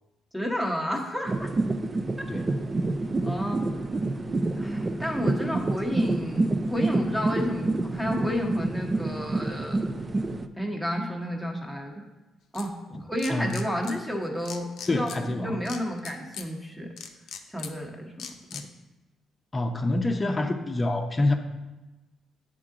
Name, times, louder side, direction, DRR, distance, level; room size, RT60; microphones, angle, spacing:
voice 1, 0.3-1.5 3.2-3.6 4.6-9.8 10.6-12.0 12.5-12.7 13.0-16.9 17.5-18.3, equal, 5° right, 1 dB, 1.1 m, -31 dB
sound 1, 1.3-10.5, right 2 dB, 30° right, 0.4 m, -28 dB
sound 2, 12.5-12.7 13.2-14.0 14.4-15.2 15.6-16.5 17.0-17.7 18.2-18.6, left 8 dB, 80° left, 0.6 m, -39 dB
voice 2, 14.9-15.6 18.5-18.6 19.5-21.3, left 2 dB, 25° left, 6 dB, 0.7 m, -26 dB
9.0 x 3.8 x 3.8 m, 1.1 s
cardioid pair, 90°, 0 cm